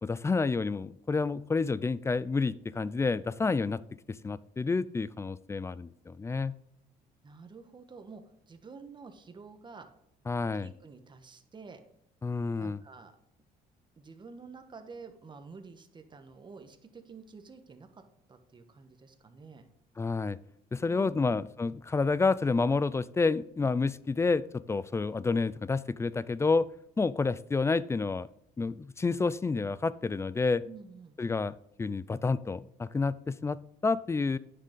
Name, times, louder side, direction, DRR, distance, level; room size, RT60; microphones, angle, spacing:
voice 1, 0.0-3.8 4.1-6.6 10.3-10.7 12.2-12.8 20.0-20.4 20.7-26.7 27.0-28.3 28.6-30.6 31.2-34.4, left 4 dB, 15° left, 18 dB, 0.3 m, -29 dB
voice 2, 7.2-9.9 10.5-11.8 12.6-13.1 14.0-18.0 18.3-19.6 20.8-21.4 30.6-31.2, right 4 dB, 25° right, 7 dB, 1.3 m, -49 dB
9.4 x 6.7 x 3.9 m, 0.75 s
cardioid pair, 110°, 17 cm